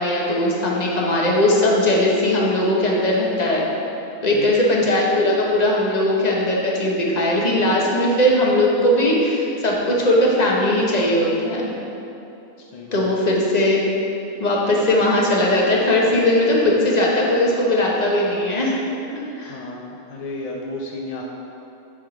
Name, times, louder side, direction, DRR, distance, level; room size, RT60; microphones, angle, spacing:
voice 1, 0.0-3.7 4.2-11.7 12.9-13.9 14.4-18.7 19.4-19.6, left 1 dB, 35° left, -3 dB, 1.0 m, -19 dB
voice 2, 4.3-4.7 12.6-13.1 19.5-21.2, left 2 dB, 55° left, -1 dB, 0.4 m, -33 dB
9.5 x 3.7 x 4.8 m, 2.9 s
omnidirectional pair, 1.4 m